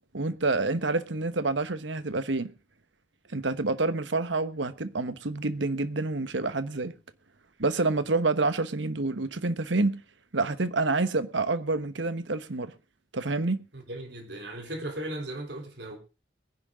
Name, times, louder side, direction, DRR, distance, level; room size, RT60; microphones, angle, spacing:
voice 1, 0.1-2.5 3.3-6.9 7.6-10.0 10.3-12.7 13.1-13.6, right 3 dB, 85° right, 1.2 m, -28 dB
voice 2, 13.7-16.0, right 1 dB, 65° right, 3.7 m, -37 dB
22.0 x 10.5 x 3.7 m
head